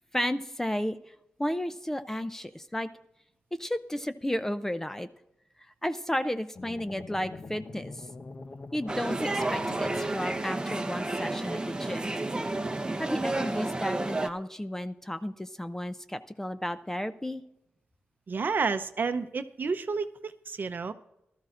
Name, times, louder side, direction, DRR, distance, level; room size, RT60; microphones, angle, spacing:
voice 1, 0.1-1.0 1.4-2.9 3.5-5.1 5.8-8.1 8.7-12.2 13.0-17.4, left 1 dB, 10° left, 11 dB, 0.5 m, -33 dB
sound 1, 6.5-10.8, left 3 dB, 40° left, 0.8 m, -44 dB
sound 2, 8.9-14.3, right 2 dB, 20° right, 0.8 m, -31 dB
voice 2, 18.3-20.9, right 4 dB, 50° right, 10 dB, 0.7 m, -30 dB
19.0 x 13.0 x 2.5 m, 0.84 s
wide cardioid pair, 90°, 4 cm